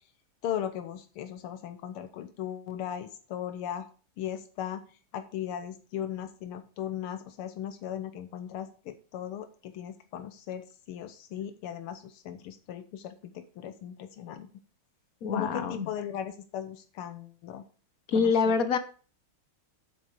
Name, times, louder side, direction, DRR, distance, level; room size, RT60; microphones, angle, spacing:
voice 1, 0.4-3.9 4.2-4.8 5.1-14.5 15.3-17.7 18.1-18.6, left 10 dB, 85° left, 9 dB, 1.8 m, -37 dB
voice 2, 15.2-15.9 18.1-18.8, left 5 dB, 50° left, 11 dB, 1.2 m, -25 dB
8.9 x 7.2 x 4.8 m, 0.39 s
omnidirectional pair, 2.4 m